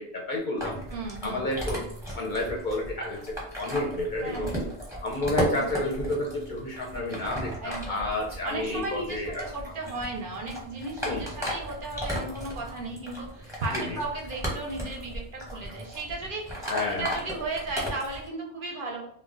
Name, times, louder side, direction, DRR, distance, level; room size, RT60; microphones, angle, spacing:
voice 1, 0.0-0.8 1.2-4.5 5.0-9.4 11.0-11.2 13.7-14.0 16.7-17.1, left 1 dB, 55° left, -1 dB, 0.6 m, -30 dB
sound 1, 0.6-18.3, equal, 5° right, 0.7 m, -36 dB
voice 2, 0.9-1.5 4.2-4.6 5.5-5.7 7.6-8.1 8.4-19.1, right 2 dB, 60° right, 0 dB, 0.6 m, -35 dB
2.2 x 2.1 x 3.6 m, 0.68 s
omnidirectional pair, 1.2 m